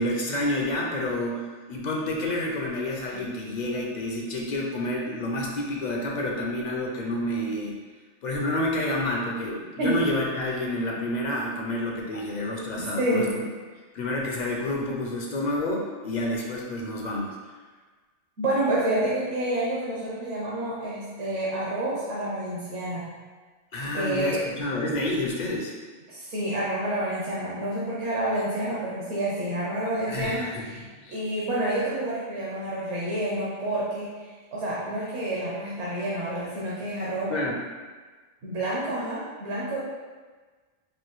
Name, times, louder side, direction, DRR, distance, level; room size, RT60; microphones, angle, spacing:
voice 1, 0.0-7.8 8.2-13.4 13.9-17.3 23.7-25.7 30.1-31.2 37.3-37.6, left 1 dB, 50° left, -1 dB, 0.6 m, -29 dB
voice 2, 12.8-13.4 18.4-23.1 23.9-24.4 26.1-30.8 31.1-34.1 34.5-37.3 38.4-39.8, right 1 dB, 75° right, -7 dB, 1.1 m, -28 dB
4.6 x 2.6 x 3.0 m, 1.4 s
omnidirectional pair, 1.2 m